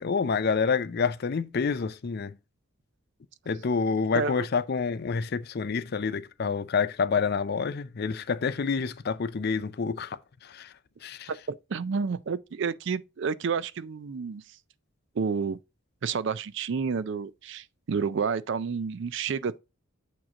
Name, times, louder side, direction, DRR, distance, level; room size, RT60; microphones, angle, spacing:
voice 1, 0.0-2.4 3.5-10.7 11.0-11.3, left 5 dB, 45° left, 0.4 m, -28 dB
voice 2, 4.1-4.5 11.3-14.4 15.2-15.6 16.0-19.6, right 5 dB, 55° right, 0.4 m, -30 dB
8.7 x 3.0 x 5.0 m
head